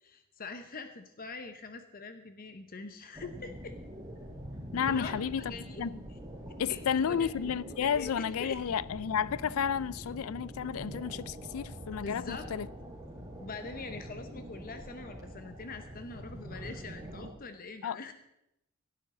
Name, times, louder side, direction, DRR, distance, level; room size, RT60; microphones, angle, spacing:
voice 1, 0.0-3.7 4.9-5.2 5.5-5.8 6.7-7.3 7.8-8.1 8.4-8.6 12.0-12.5 13.4-18.1, left 4 dB, 45° left, 0.9 m, -43 dB
sound 1, 3.1-17.3, equal, 15° right, 4.7 m, -44 dB
voice 2, 4.7-6.0 6.6-12.7 17.8-18.0, left 7 dB, 75° left, 0.4 m, -32 dB
18.0 x 12.0 x 3.8 m
head